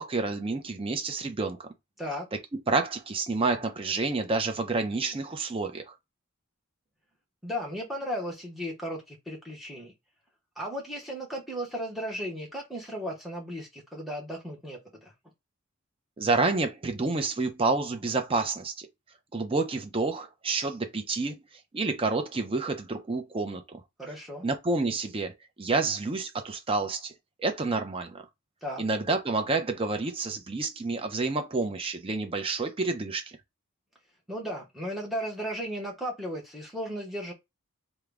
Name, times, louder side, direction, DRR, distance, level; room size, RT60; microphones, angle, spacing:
voice 1, 0.0-1.7 2.3-6.0 16.2-18.9 19.3-21.4 21.7-23.8 24.4-27.1 27.4-28.2 28.8-33.4, right 3 dB, 25° right, 0.5 m, -29 dB
voice 2, 7.4-9.9 10.6-15.1 24.0-24.4 28.6-28.8 34.3-37.3, equal, ahead, 0.8 m, -35 dB
3.6 x 2.0 x 3.4 m
head